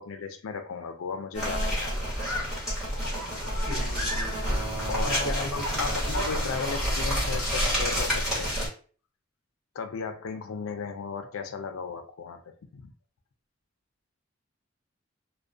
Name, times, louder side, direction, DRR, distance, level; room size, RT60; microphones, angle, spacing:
voice 1, 0.0-2.0 4.9-8.5 9.8-12.9, left 5 dB, 90° left, 8 dB, 0.4 m, -35 dB
sound 1, 1.3-8.7, equal, ahead, 1.1 m, -28 dB
voice 2, 3.7-4.4 5.0-6.0, left 1 dB, 45° left, 1 dB, 0.7 m, -36 dB
2.3 x 2.1 x 2.4 m, 0.41 s
head